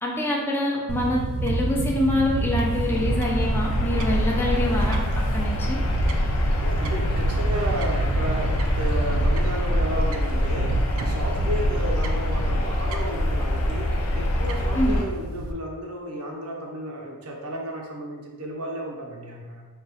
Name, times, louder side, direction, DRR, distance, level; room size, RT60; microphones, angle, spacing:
voice 1, 0.0-5.8 14.8-15.0, left 1 dB, 10° left, -3 dB, 0.6 m, -25 dB
Fowl / Bird, 0.9-15.5, right 2 dB, 65° right, 0.4 m, -28 dB
sound 1, 2.4-15.0, left 1 dB, 80° left, 0.6 m, -25 dB
voice 2, 6.6-10.7 11.0-19.7, right 1 dB, 90° right, 0 dB, 0.8 m, -33 dB
3.9 x 2.4 x 4.1 m, 1.2 s
head